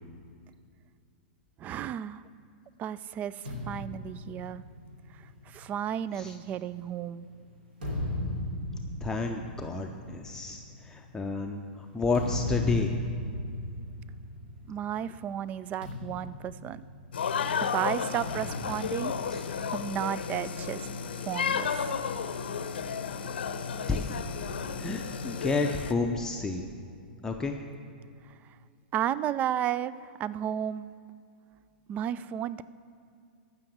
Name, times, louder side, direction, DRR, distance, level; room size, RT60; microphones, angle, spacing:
voice 1, 1.6-2.2 2.8-4.6 5.1-7.3 14.7-16.8 17.6-19.1 19.7-20.9 21.2-21.9 28.2-28.3 28.9-29.9 30.2-30.9 31.9-32.6, right 10 dB, 30° right, 18 dB, 0.3 m, -33 dB
sound 1, 3.4-7.0 7.6-15.0 15.2-15.5 15.8-17.4 18.3-20.0, left 1 dB, 75° right, 3.1 m, -37 dB
voice 2, 9.0-12.9 19.3-19.4 23.9-24.2 24.8-26.6 27.2-27.6, left 3 dB, 10° left, 2 dB, 0.6 m, -31 dB
sound 2, 17.1-25.9, left 6 dB, 80° left, 0.7 m, -33 dB
14.0 x 6.1 x 7.4 m, 2.3 s
hypercardioid pair, 115°, 5 cm